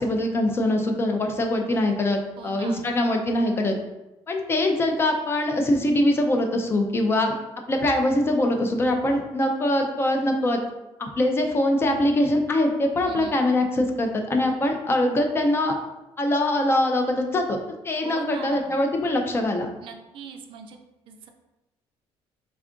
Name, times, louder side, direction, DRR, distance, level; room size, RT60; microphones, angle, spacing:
voice 1, 0.0-3.8 4.3-7.3 7.7-10.6 11.0-15.8 16.2-17.6 17.8-19.7, left 1 dB, 25° left, 4 dB, 0.4 m, -23 dB
voice 2, 2.4-2.9 13.0-13.4 18.0-18.7 19.8-20.8 21.1-21.3, right 5 dB, 55° right, 5 dB, 0.4 m, -40 dB
3.5 x 2.3 x 3.6 m, 1.0 s
cardioid pair, 155°, 10 cm